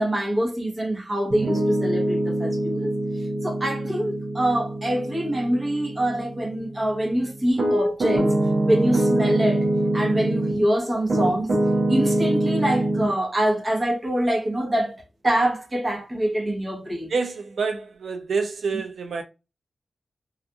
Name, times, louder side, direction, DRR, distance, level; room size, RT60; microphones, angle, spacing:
voice 1, 0.0-8.3 8.7-9.7 9.9-11.5 11.9-17.1, right 1 dB, 25° right, 0.9 m, -25 dB
Piano, 1.3-10.7 11.1-13.1, right 1 dB, 60° right, 0.9 m, -24 dB
voice 2, 17.1-19.2, right 4 dB, 85° right, 0.3 m, -27 dB
2.8 x 2.4 x 2.2 m
wide cardioid pair, 170°, 0 cm